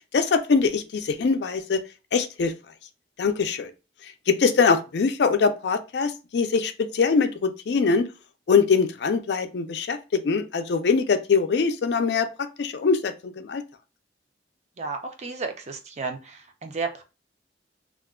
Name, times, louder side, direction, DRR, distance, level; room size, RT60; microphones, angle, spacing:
voice 1, 0.1-1.8 2.1-2.5 3.2-3.7 4.3-8.1 8.5-13.6, left 5 dB, 70° left, 0.4 m, -23 dB
voice 2, 14.8-17.0, right 4 dB, 40° right, 0.5 m, -33 dB
2.4 x 2.2 x 3.5 m
head